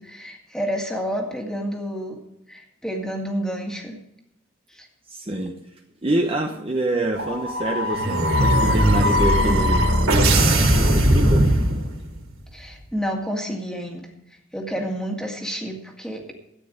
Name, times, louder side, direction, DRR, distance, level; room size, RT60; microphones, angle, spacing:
voice 1, 0.0-2.2 2.5-4.0 4.7-4.9 12.5-14.1 14.5-16.3, equal, 5° left, 1 dB, 1.9 m, -29 dB
voice 2, 5.1-5.7 6.0-9.8 10.3-11.5, right 1 dB, 25° right, 2 dB, 0.9 m, -26 dB
sound 1, 7.2-12.2, equal, 80° right, 3.6 m, -19 dB
13.5 x 9.4 x 5.0 m, 0.84 s
head